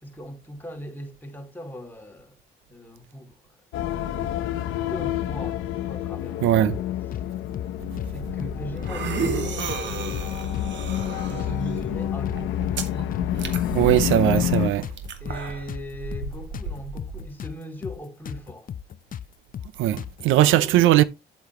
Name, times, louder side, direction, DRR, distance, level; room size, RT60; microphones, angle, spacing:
voice 1, 0.0-2.3 2.7-3.4 4.0-6.8 8.1-10.3 11.2-13.4 15.2-18.7 20.4-20.9, equal, 10° left, 2.5 m, -39 dB
sound 1, 3.7-14.7, left 12 dB, 90° left, 0.8 m, -29 dB
voice 2, 6.4-6.8 13.7-14.9 19.8-21.0, right 13 dB, 90° right, 0.6 m, -19 dB
sound 2, 6.7-7.3 7.5-7.7 8.0-9.0 9.3-9.4 9.7-10.7 11.0-11.1 11.4-12.4 12.7-12.8 13.1-14.6 14.8-17.6 17.8-18.0 18.3-20.3, left 9 dB, 45° left, 0.5 m, -36 dB
sound 3, 7.8-17.3, right 5 dB, 65° right, 1.6 m, -34 dB
8.8 x 8.0 x 3.0 m
cardioid pair, 90°, 20 cm